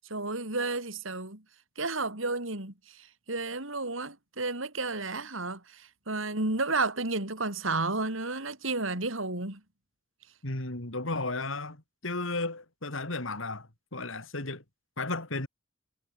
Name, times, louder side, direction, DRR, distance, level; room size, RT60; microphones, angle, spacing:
voice 1, 0.1-1.4 1.8-9.6, right 3 dB, 80° right, 5.1 m, -32 dB
voice 2, 10.4-14.6 15.0-15.5, left 2 dB, 80° left, 3.6 m, -34 dB
head